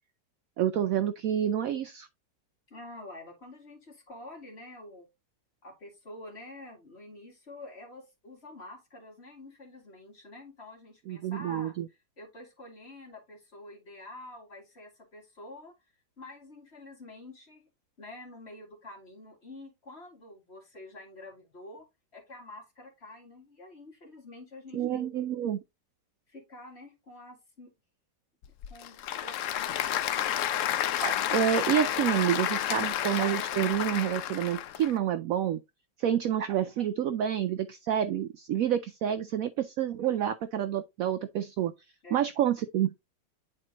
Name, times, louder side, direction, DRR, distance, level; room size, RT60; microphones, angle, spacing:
voice 1, 0.6-2.1 11.1-11.9 24.7-25.6 31.0-35.6 36.0-41.7 42.1-43.0, right 10 dB, 80° right, 0.7 m, -28 dB
voice 2, 2.7-5.1 5.6-15.7 16.2-17.6 18.0-21.9 22.1-25.3 26.3-27.7 28.7-29.9 42.0-42.3, left 2 dB, 35° left, 2.6 m, -48 dB
Applause / Crowd, 28.4-34.9, left 11 dB, 85° left, 0.6 m, -30 dB
9.7 x 4.4 x 2.9 m
omnidirectional pair, 2.0 m